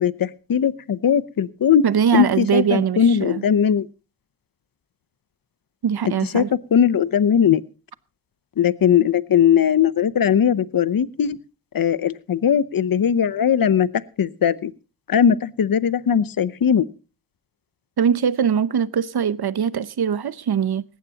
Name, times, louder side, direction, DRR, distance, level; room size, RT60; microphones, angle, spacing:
voice 1, 0.0-1.8 2.1-3.9 6.3-6.4 6.7-7.6 8.6-11.4 11.7-13.9 14.2-14.7 15.1-16.8, left 8 dB, 65° left, 0.8 m, -19 dB
voice 2, 1.8-3.4 5.8-6.5 18.0-20.8, right 8 dB, 80° right, 0.8 m, -21 dB
18.5 x 16.0 x 2.8 m
cardioid pair, 45°, 38 cm